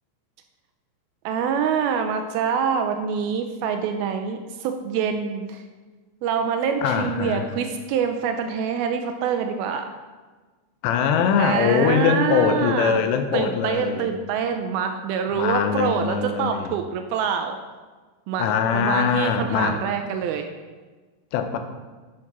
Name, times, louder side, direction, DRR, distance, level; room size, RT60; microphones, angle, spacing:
voice 1, 1.3-5.6 6.2-10.0 11.4-13.0 13.3-17.6 18.3-20.5, right 7 dB, 85° right, 6 dB, 2.2 m, -25 dB
voice 2, 6.8-7.5 10.8-14.1 15.3-16.7 18.4-19.8 21.3-21.6, left 7 dB, 85° left, 7 dB, 2.9 m, -22 dB
9.8 x 6.0 x 5.9 m, 1.3 s
omnidirectional pair, 5.0 m